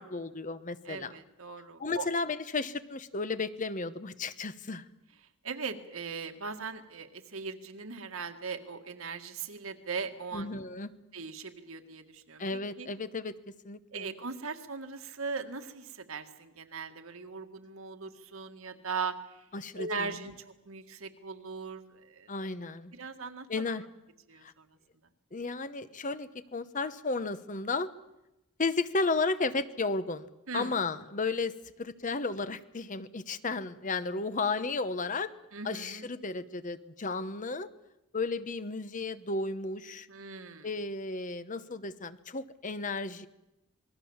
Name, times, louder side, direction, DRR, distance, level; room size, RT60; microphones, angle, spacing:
voice 1, 0.0-1.1 1.8-4.8 10.3-10.9 12.4-13.3 13.6-14.1 19.5-20.3 22.3-22.9 23.5-23.8 24.4-24.5 25.3-27.9 28.6-30.3 30.5-35.3 35.6-37.7 38.1-40.1 40.6-43.3, left 3 dB, 35° left, 13 dB, 1.0 m, -33 dB
voice 2, 0.9-2.1 5.4-10.5 11.1-12.9 13.9-19.4 19.8-22.3 22.9-23.7 24.3-24.7 30.5-30.8 35.5-36.1 40.1-40.7, right 4 dB, 75° right, 7 dB, 1.9 m, -39 dB
27.0 x 20.5 x 7.2 m, 0.92 s
head